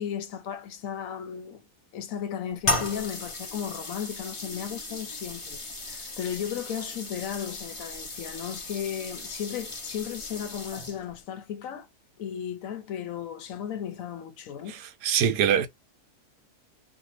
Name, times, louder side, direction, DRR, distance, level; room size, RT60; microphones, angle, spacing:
voice 1, 0.0-1.6 1.9-11.9 12.2-14.8, left 9 dB, 70° left, 1.0 m, -35 dB
sound 1, 2.6-11.2, left 2 dB, 30° left, 0.6 m, -35 dB
voice 2, 15.0-15.7, right 8 dB, 75° right, 1.0 m, -22 dB
2.7 x 2.5 x 3.1 m
omnidirectional pair, 1.6 m